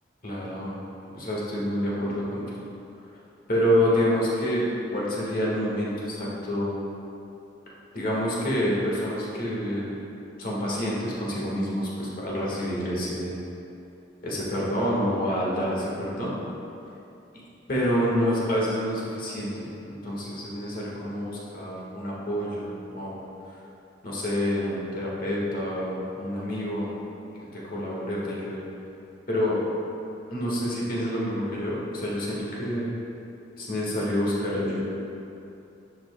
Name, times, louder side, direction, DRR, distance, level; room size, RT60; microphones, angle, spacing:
voice 1, 0.2-0.7 1.1-2.6 3.5-4.6 4.9-6.7 7.9-10.0 10.4-13.3 14.2-16.3 17.7-23.2 24.0-26.9 27.5-28.6 29.3-29.6 30.3-32.9 33.6-34.8, equal, 50° left, -5 dB, 1.5 m, -27 dB
10.0 x 5.3 x 2.2 m, 2.8 s
head